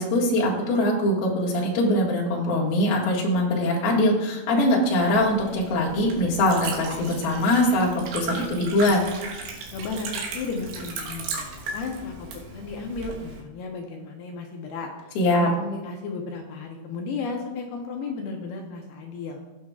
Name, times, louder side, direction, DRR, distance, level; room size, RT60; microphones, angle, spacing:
voice 1, 0.0-9.0 15.2-15.5, left 1 dB, 60° left, -4 dB, 3.5 m, -22 dB
Liquid, 4.9-13.4, right 3 dB, 70° right, 3.3 m, -36 dB
voice 2, 9.7-14.9 15.3-19.4, left 4 dB, 75° left, 1 dB, 2.4 m, -34 dB
16.0 x 8.8 x 2.4 m, 1.1 s
omnidirectional pair, 5.5 m